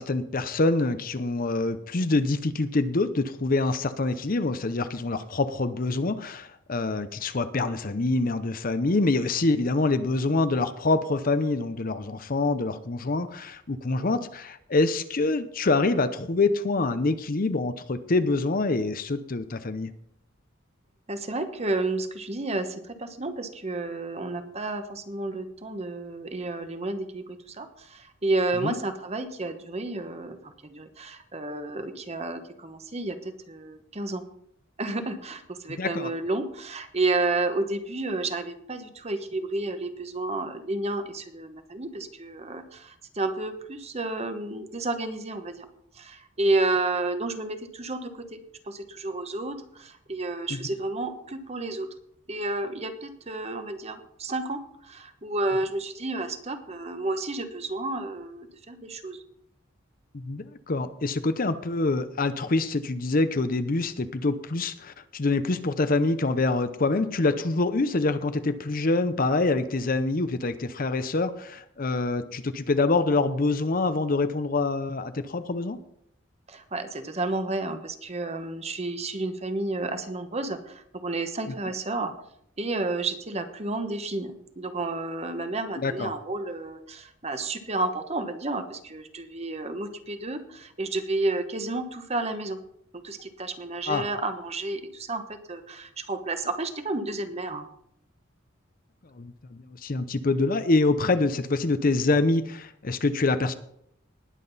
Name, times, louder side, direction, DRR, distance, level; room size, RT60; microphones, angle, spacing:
voice 1, 0.0-19.9 28.6-28.8 35.8-36.1 50.5-50.6 60.1-75.8 85.8-86.1 93.9-94.1 99.2-103.5, left 3 dB, 45° left, 11 dB, 0.7 m, -25 dB
voice 2, 21.1-34.2 34.8-45.7 45.9-48.4 48.6-51.9 52.3-59.2 76.5-82.1 82.6-92.6 92.9-95.2 95.5-97.7, right 2 dB, 30° right, 8 dB, 1.1 m, -31 dB
19.5 x 7.5 x 4.1 m, 0.72 s
head